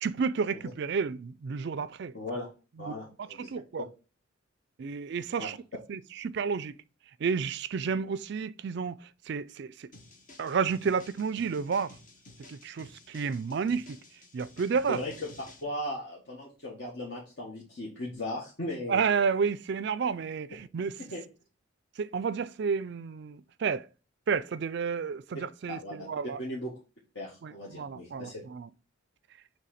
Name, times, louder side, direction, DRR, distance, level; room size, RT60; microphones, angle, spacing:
voice 1, 0.0-2.1 2.8-3.9 4.8-5.6 5.9-6.7 7.2-9.0 9.3-9.9 10.4-12.0 12.5-14.0 14.3-15.0 18.9-20.9 22.0-23.9 24.3-26.4 27.4-28.7, right 5 dB, 55° right, 0.4 m, -31 dB
voice 2, 2.1-2.5 2.8-3.5 5.4-5.5 14.9-15.3 15.6-19.0 21.0-21.2 25.7-26.1 26.4-26.7 27.1-28.4, left 1 dB, 55° left, 1.6 m, -37 dB
sound 1, 9.9-15.6, left 2 dB, 40° left, 1.1 m, -53 dB
6.8 x 3.2 x 4.9 m
head